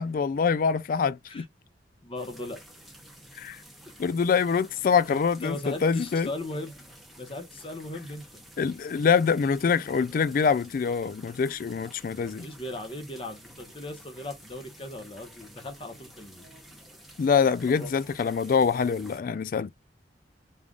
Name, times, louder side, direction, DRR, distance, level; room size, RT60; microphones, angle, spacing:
voice 1, 0.0-1.4 3.4-3.6 4.0-6.3 8.6-12.5 17.2-19.7, left 6 dB, 50° left, 0.3 m, -25 dB
voice 2, 2.0-2.6 5.1-6.9 7.2-8.3 12.1-16.5 17.8-17.9, left 1 dB, 30° left, 1.1 m, -38 dB
sound 1, 2.2-19.2, right 1 dB, ahead, 1.0 m, -51 dB
3.6 x 3.4 x 2.4 m
head